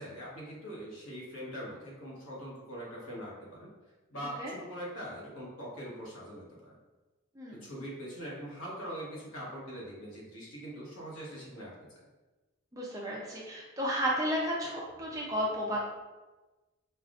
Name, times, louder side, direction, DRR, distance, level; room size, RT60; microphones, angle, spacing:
voice 1, 0.0-3.7 4.1-6.8 7.5-12.1, equal, 70° left, -5 dB, 1.2 m, -42 dB
voice 2, 12.7-15.8, equal, 15° right, -4 dB, 0.5 m, -33 dB
5.4 x 2.4 x 2.5 m, 1.2 s
head